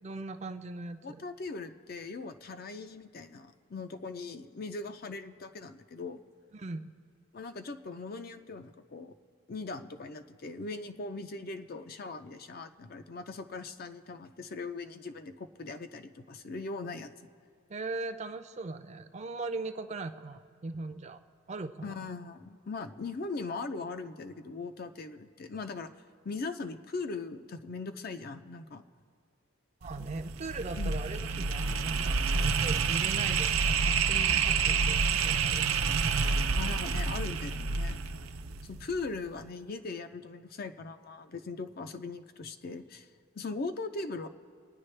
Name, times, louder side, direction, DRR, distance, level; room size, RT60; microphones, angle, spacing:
voice 1, 0.0-1.2 6.5-6.9 17.7-21.2 21.5-22.0 29.8-35.8, right 3 dB, 30° right, 7 dB, 0.5 m, -39 dB
voice 2, 1.0-6.2 7.3-9.1 9.5-17.1 21.8-25.9 26.2-28.8 30.8-30.9 36.6-38.0 38.6-43.1 43.3-44.3, left 3 dB, 45° left, 8 dB, 0.5 m, -40 dB
sound 1, 29.8-39.0, right 5 dB, 85° right, 0.6 m, -29 dB
25.5 x 9.7 x 3.3 m, 2.1 s
head